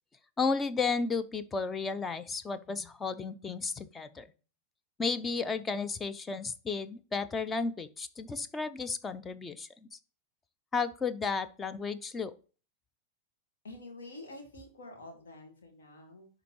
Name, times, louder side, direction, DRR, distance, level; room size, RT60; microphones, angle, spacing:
voice 1, 0.4-4.3 5.0-9.7 10.7-12.3, left 4 dB, 15° left, 12 dB, 0.5 m, -33 dB
voice 2, 13.6-16.3, left 2 dB, 65° left, 2 dB, 2.3 m, -48 dB
11.0 x 3.8 x 3.0 m, 0.36 s
figure-of-eight pair, 90°, 0 cm